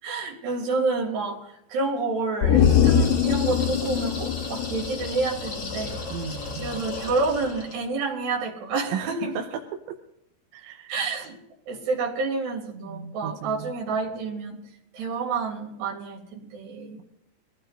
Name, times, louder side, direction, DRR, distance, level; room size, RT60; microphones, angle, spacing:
voice 1, 0.0-6.0 6.6-9.3 10.9-11.4 11.7-14.6 14.9-17.0, right 3 dB, 60° right, -1 dB, 4.8 m, -29 dB
sound 1, 2.4-5.8 6.1-6.2, left 8 dB, 80° left, 2.8 m, -22 dB
sound 2, 2.5-7.9, left 3 dB, 40° left, 3.0 m, -35 dB
voice 2, 6.1-6.8 8.9-9.5 10.5-10.9 12.9-13.7, right 7 dB, 85° right, 4 dB, 3.1 m, -35 dB
24.0 x 15.0 x 2.6 m, 0.78 s
omnidirectional pair, 5.5 m